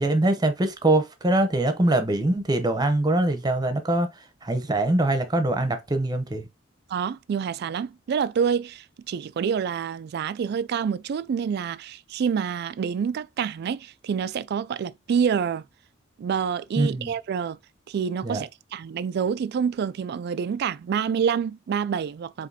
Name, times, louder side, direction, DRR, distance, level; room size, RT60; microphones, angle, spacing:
voice 1, 0.0-4.1 4.4-6.4 16.8-17.1 18.2-18.4, right 2 dB, 20° right, 0.8 m, -23 dB
voice 2, 6.9-15.7 16.2-17.6 17.9-22.5, right 7 dB, 55° right, 0.3 m, -27 dB
5.0 x 3.1 x 2.8 m
head